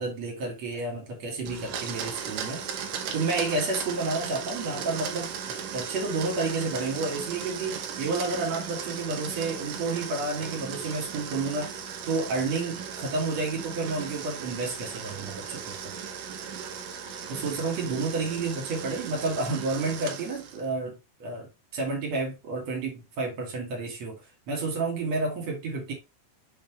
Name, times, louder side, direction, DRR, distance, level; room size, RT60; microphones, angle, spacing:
voice 1, 0.0-2.6 3.1-11.8 12.0-15.8 17.3-24.2 24.5-25.9, right 3 dB, 50° right, 3.4 m, -30 dB
Domestic sounds home sounds, 1.4-20.7, right 7 dB, 70° right, 2.6 m, -37 dB
7.0 x 5.3 x 3.1 m
omnidirectional pair, 4.2 m